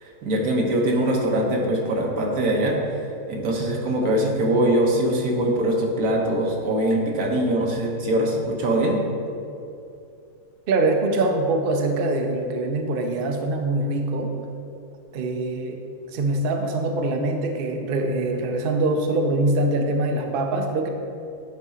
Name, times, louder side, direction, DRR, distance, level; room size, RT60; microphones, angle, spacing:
voice 1, 0.0-2.8 3.3-9.0, right 1 dB, 75° right, 0 dB, 1.5 m, -22 dB
voice 2, 10.7-14.4 15.1-15.8 16.1-20.9, right 2 dB, 60° right, 4 dB, 0.6 m, -23 dB
9.6 x 3.6 x 4.3 m, 2.6 s
omnidirectional pair, 1.6 m